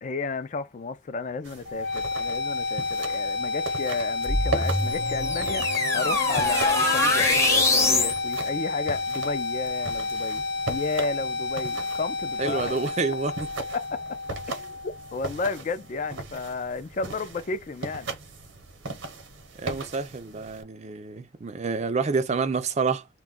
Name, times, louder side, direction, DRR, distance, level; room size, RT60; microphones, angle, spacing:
voice 1, 0.0-5.7 5.9-12.8 13.7-14.2 14.5-18.1, left 4 dB, 40° left, 0.4 m, -33 dB
sound 1, 1.4-20.6, right 3 dB, 80° right, 0.9 m, -38 dB
sound 2, 1.7-15.6, left 3 dB, 65° left, 0.8 m, -30 dB
sound 3, 4.2-8.2, left 2 dB, 15° left, 0.7 m, -23 dB
voice 2, 12.4-13.3 19.6-23.1, right 4 dB, 35° right, 0.4 m, -28 dB
2.3 x 2.2 x 3.7 m
head